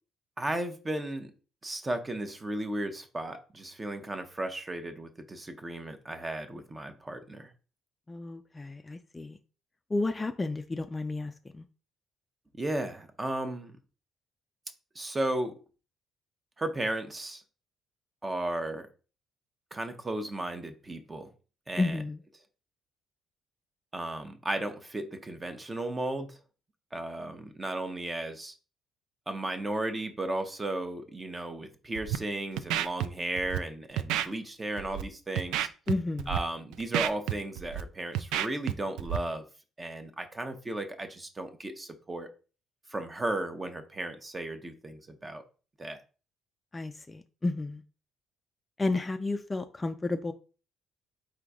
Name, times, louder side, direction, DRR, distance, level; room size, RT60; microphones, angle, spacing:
voice 1, 0.4-1.3 1.6-7.5 12.6-13.7 14.9-15.5 16.6-17.4 18.2-18.9 19.7-21.3 21.7-22.0 23.9-26.4 26.9-28.5 29.3-35.7 36.3-39.5 39.8-42.3 42.9-45.4 45.8-46.0, right 1 dB, 20° right, 7 dB, 0.8 m, -35 dB
voice 2, 8.1-9.4 9.9-11.6 21.8-22.2 35.9-36.3 46.7-47.8 48.8-50.3, left 2 dB, 20° left, 8 dB, 0.4 m, -32 dB
Scratching (performance technique), 31.9-32.2 32.6-33.1 33.4-33.6 34.0-34.3 34.8-35.0 35.4-35.9 36.2-36.4 36.7-37.8 38.1-38.7 39.0-39.2, right 12 dB, 85° right, 0.3 m, -29 dB
3.8 x 2.6 x 4.7 m, 0.36 s
cardioid pair, 95°, 0 cm